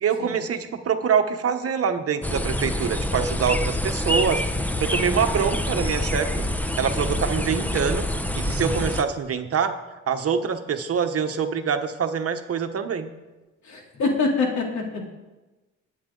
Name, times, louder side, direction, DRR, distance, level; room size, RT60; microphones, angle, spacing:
voice 1, 0.0-4.4 4.8-6.3 6.8-8.0 8.4-9.8 10.1-13.1, right 7 dB, 50° right, 7 dB, 1.2 m, -25 dB
sound 1, 2.2-9.0, left 1 dB, 5° left, 0.9 m, -26 dB
voice 2, 13.6-15.1, left 3 dB, 70° left, 0 dB, 3.3 m, -25 dB
21.0 x 8.5 x 3.9 m, 1.1 s
cardioid pair, 90°, 30 cm